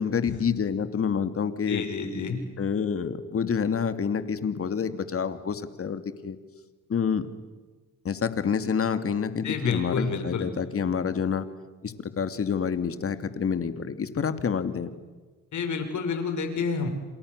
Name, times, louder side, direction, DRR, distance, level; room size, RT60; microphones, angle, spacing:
voice 1, 0.0-1.8 2.6-6.4 6.9-7.3 8.0-11.4 11.8-14.9, left 6 dB, 45° left, 10 dB, 2.6 m, -28 dB
voice 2, 1.7-2.5 9.4-10.5 15.5-16.9, left 5 dB, 60° left, 6 dB, 6.1 m, -29 dB
29.5 x 27.0 x 6.8 m, 1.3 s
supercardioid pair, 75°, 33 cm